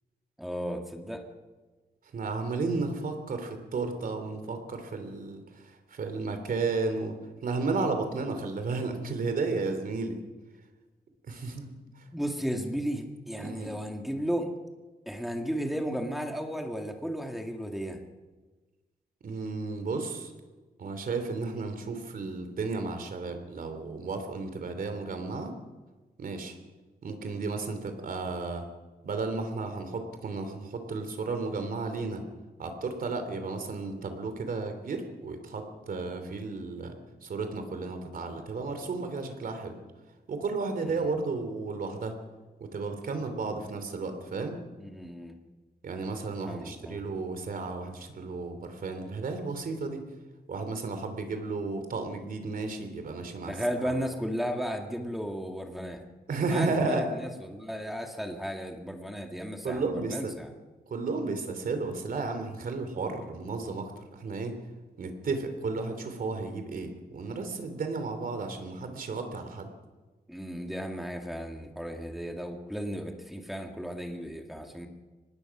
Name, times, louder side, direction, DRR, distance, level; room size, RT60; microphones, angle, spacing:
voice 1, 0.4-1.2 12.1-14.5 15.1-18.0 40.8-41.1 44.8-45.3 46.5-47.0 53.5-56.0 56.4-60.5 70.3-74.9, equal, ahead, 3 dB, 2.0 m, -34 dB
voice 2, 2.1-7.1 7.4-10.2 11.3-12.1 13.4-13.7 19.2-20.3 20.8-25.5 26.2-26.6 27.0-28.7 29.0-32.2 32.6-37.0 37.2-39.8 40.3-42.2 42.6-44.6 45.8-50.1 50.5-53.6 53.8-53.9 56.3-57.1 59.6-60.3 60.9-64.6 65.0-69.7, right 3 dB, 60° right, 7 dB, 3.2 m, -33 dB
24.5 x 20.0 x 6.0 m, 1.3 s
wide cardioid pair, 175°, 16 cm